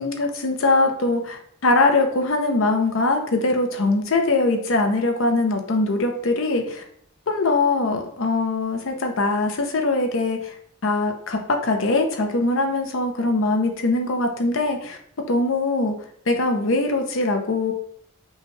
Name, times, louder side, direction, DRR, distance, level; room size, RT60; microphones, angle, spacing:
voice 1, 0.0-6.8 7.3-10.5 10.8-15.0 15.3-15.9 16.3-17.7, left 2 dB, 70° left, 4 dB, 0.6 m, -22 dB
5.4 x 2.3 x 3.1 m, 0.65 s
head